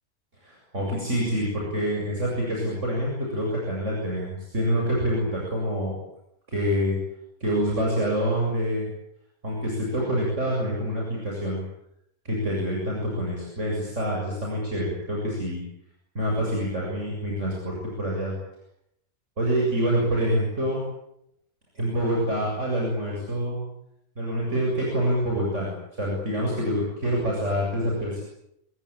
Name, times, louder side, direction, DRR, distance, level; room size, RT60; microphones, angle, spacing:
voice 1, 0.4-5.9 6.5-7.0 7.4-8.9 9.4-11.6 12.2-15.6 16.1-18.3 19.4-20.8 21.7-23.6 24.2-28.2, equal, 55° right, -2 dB, 8.3 m, -26 dB
27.0 x 22.5 x 8.9 m, 0.78 s
omnidirectional pair, 1.5 m